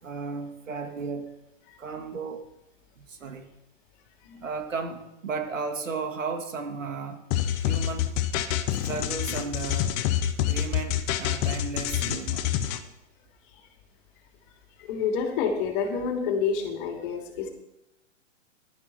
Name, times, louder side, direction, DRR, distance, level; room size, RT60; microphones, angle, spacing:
voice 1, 0.0-1.3 1.8-2.5 3.0-3.5 4.4-7.2 7.6-8.1 8.8-10.0 10.4-12.5, right 4 dB, 85° right, 5 dB, 2.1 m, -34 dB
sound 1, 7.3-12.8, left 11 dB, 15° left, 0.3 m, -27 dB
voice 2, 14.8-17.5, left 6 dB, 40° left, 3 dB, 2.8 m, -28 dB
15.0 x 12.0 x 4.2 m, 0.87 s
hypercardioid pair, 130°, 37 cm